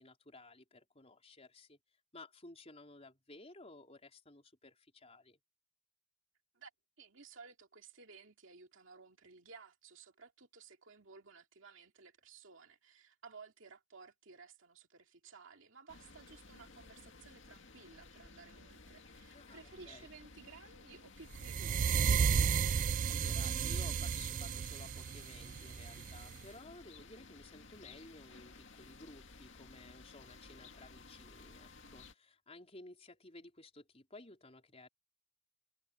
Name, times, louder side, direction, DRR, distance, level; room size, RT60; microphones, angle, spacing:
voice 1, 0.0-1.8 2.1-5.4 19.3-20.1 23.1-34.9, left 2 dB, 30° left, 4.3 m, -55 dB
voice 2, 7.0-22.7, right 4 dB, 65° right, 2.6 m, -57 dB
sound 1, 15.9-32.1, left 3 dB, 65° left, 2.2 m, -56 dB
sound 2, 21.4-26.4, right 6 dB, 40° right, 0.3 m, -33 dB
head